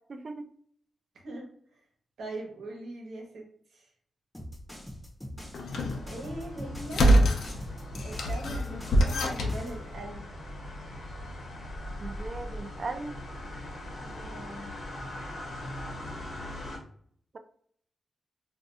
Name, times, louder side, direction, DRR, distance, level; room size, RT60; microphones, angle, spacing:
voice 1, 0.1-0.5 12.0-13.2 14.0-14.5, right 3 dB, 40° right, 8 dB, 0.3 m, -39 dB
voice 2, 1.1-1.5 2.2-3.5 3.7-3.8 6.1-7.1 8.0-10.3 14.2-14.7, right 2 dB, 85° right, 0 dB, 1.0 m, -41 dB
sound 1, 4.3-9.8, equal, 5° left, 0.7 m, -42 dB
sound 2, 5.5-6.1 6.9-7.5 7.9-9.6, right 1 dB, 80° left, 0.6 m, -24 dB
sound 3, 5.7-16.8, left 1 dB, 60° left, 1.1 m, -40 dB
2.5 x 2.2 x 4.0 m, 0.62 s
wide cardioid pair, 140°, 0 cm